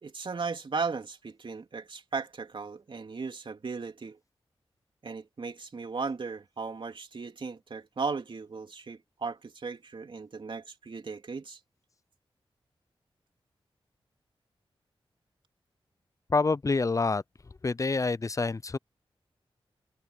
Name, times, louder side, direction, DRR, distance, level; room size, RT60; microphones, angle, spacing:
voice 1, 0.0-4.2 5.0-11.6, right 4 dB, 60° right, 3.2 m, -36 dB
voice 2, 16.3-17.2 17.6-18.8, left 3 dB, 35° left, 0.5 m, -27 dB
cardioid pair, 70°, 10 cm